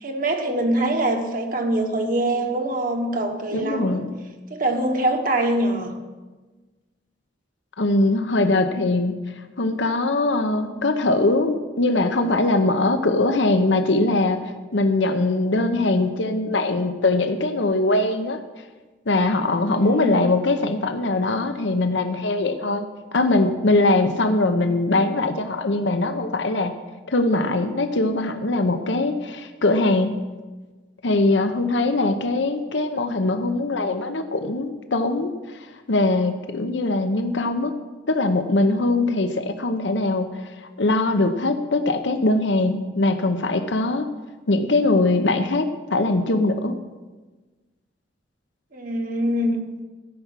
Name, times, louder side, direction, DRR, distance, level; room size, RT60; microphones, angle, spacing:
voice 1, 0.0-4.0 4.5-5.9 19.7-20.2 48.7-49.6, right 1 dB, 50° right, 3 dB, 1.3 m, -24 dB
voice 2, 3.5-4.2 7.8-9.2 9.6-18.4 19.1-26.8 27.1-30.2 31.0-37.7 38.1-40.5 40.8-44.1 44.5-46.8, left 2 dB, 75° left, 8 dB, 0.8 m, -21 dB
13.5 x 6.0 x 7.4 m, 1.3 s
head